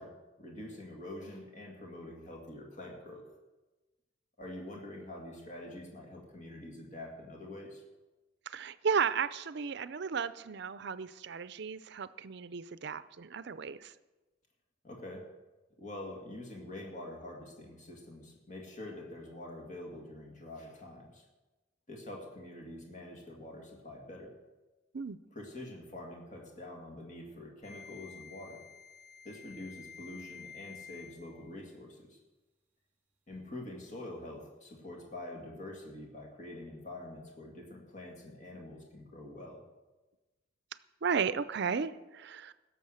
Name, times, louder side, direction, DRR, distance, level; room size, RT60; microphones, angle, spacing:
voice 1, 0.0-3.2 4.4-7.8 14.8-15.3 15.8-21.3 21.9-24.3 25.3-28.6 29.2-32.2 33.3-39.6, left 1 dB, 40° left, 0 dB, 2.1 m, -46 dB
voice 2, 8.5-13.9 24.9-25.2 41.0-42.5, right 6 dB, 60° right, 15 dB, 0.5 m, -34 dB
sound 1, 27.6-31.6, left 6 dB, 10° right, 2.1 m, -51 dB
16.5 x 6.9 x 6.5 m, 1.1 s
head